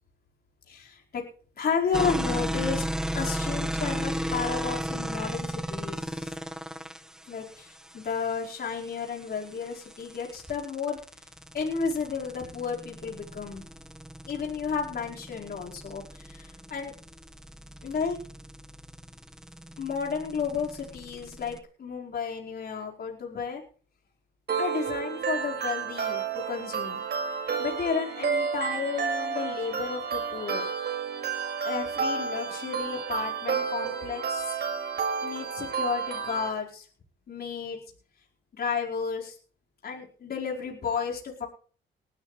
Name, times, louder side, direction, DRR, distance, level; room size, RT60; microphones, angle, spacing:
voice 1, 0.7-1.2 1.6-2.8 3.1-6.3 7.3-11.0 11.5-13.7 14.2-16.9 17.8-18.2 19.8-23.6 24.6-27.0 27.6-30.7 31.6-34.6 34.9-36.9 37.3-37.8 38.5-39.3 39.8-41.5, left 6 dB, 50° left, -1 dB, 4.7 m, -32 dB
sound 1, 1.9-21.6, equal, 5° right, 1.2 m, -35 dB
sound 2, 24.5-36.5, right 6 dB, 55° right, 5.4 m, -31 dB
19.5 x 13.0 x 3.3 m, 0.41 s
cardioid pair, 90°, 20 cm